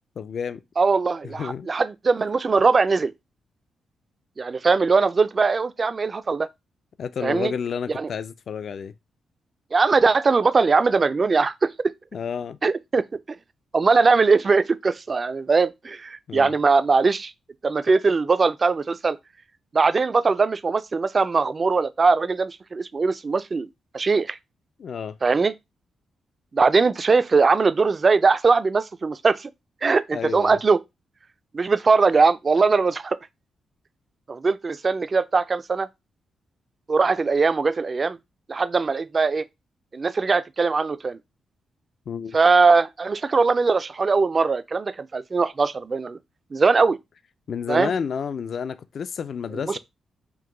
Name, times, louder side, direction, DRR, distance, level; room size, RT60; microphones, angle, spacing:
voice 1, 0.2-0.6 1.4-1.7 7.0-8.9 12.1-12.6 16.3-16.5 24.8-25.2 30.1-30.6 42.1-42.4 47.5-49.8, left 7 dB, 55° left, 0.3 m, -30 dB
voice 2, 0.8-3.1 4.4-6.5 7.2-7.5 8.0-8.1 9.7-11.7 12.6-13.0 13.7-17.3 17.6-19.2 19.7-23.7 23.9-24.4 25.2-25.5 26.5-29.5 29.8-30.8 31.5-33.2 34.3-35.9 36.9-38.2 38.5-39.4 39.9-41.2 42.3-46.2 46.5-47.0 47.7-47.9 49.7-49.8, right 4 dB, 30° right, 0.3 m, -20 dB
4.5 x 2.1 x 3.7 m
wide cardioid pair, 135°, 0 cm